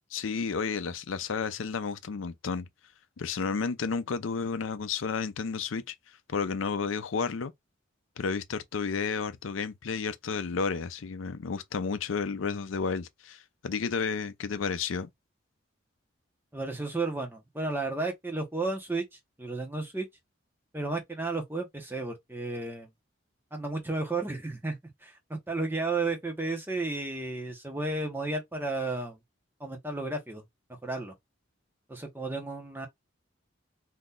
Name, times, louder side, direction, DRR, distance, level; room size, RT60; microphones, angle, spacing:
voice 1, 0.1-2.7 3.2-5.9 6.3-7.5 8.2-15.1, left 5 dB, 80° left, 0.5 m, -32 dB
voice 2, 16.5-19.0 19.4-20.1 20.7-22.9 23.5-29.2 29.6-30.4 30.8-31.1 31.9-32.9, right 3 dB, 10° right, 0.9 m, -33 dB
2.8 x 2.5 x 3.7 m
head